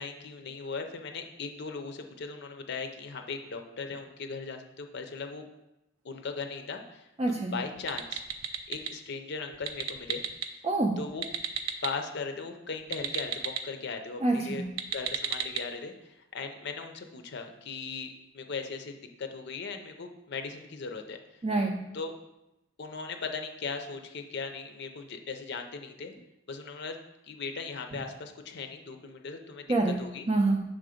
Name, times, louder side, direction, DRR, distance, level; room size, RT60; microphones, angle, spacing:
voice 1, 0.0-5.4 6.0-8.2 8.7-10.2 11.0-11.3 11.8-14.6 14.9-21.2 21.9-22.1 22.8-26.1 26.5-27.0 27.2-29.7 30.0-30.3, left 4 dB, 55° left, 6 dB, 0.6 m, -38 dB
voice 2, 7.2-7.6 10.6-11.0 14.2-14.7 21.4-21.8 29.7-30.6, right 2 dB, 25° right, 0 dB, 0.4 m, -27 dB
sound 1, 7.8-8.9 9.5-10.5 11.1-11.9 12.8-13.6 14.6-15.6, right 7 dB, 90° right, 0.5 m, -34 dB
6.1 x 3.8 x 4.9 m, 0.92 s
head